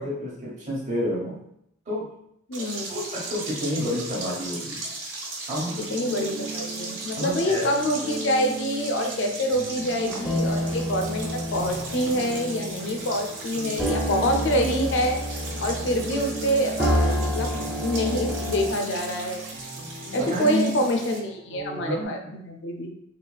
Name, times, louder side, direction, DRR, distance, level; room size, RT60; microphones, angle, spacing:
voice 1, 0.0-1.4 1.9-2.1 2.9-4.9 5.5-5.9 7.2-7.7 20.2-20.8 21.8-22.3, equal, 35° right, -7 dB, 1.0 m, -29 dB
voice 2, 2.5-2.8 5.9-15.2 15.6-17.5 17.8-19.4 20.1-22.9, equal, 60° left, 4 dB, 0.4 m, -26 dB
sound 1, 2.5-21.2, right 2 dB, 85° right, 1.3 m, -37 dB
sound 2, 5.8-22.1, right 2 dB, 70° right, 0.8 m, -39 dB
sound 3, 9.8-18.7, equal, 5° right, 0.5 m, -29 dB
3.8 x 2.3 x 2.3 m, 0.75 s
head